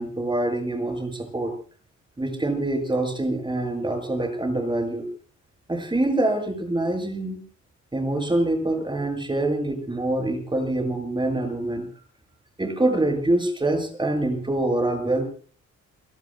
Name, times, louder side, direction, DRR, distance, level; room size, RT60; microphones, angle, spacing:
voice 1, 0.0-1.5 2.2-5.1 5.7-7.4 7.9-11.9 12.6-15.3, right 2 dB, 15° right, 5 dB, 7.1 m, -25 dB
30.0 x 18.5 x 2.2 m, 0.42 s
cardioid pair, 90°, 30 cm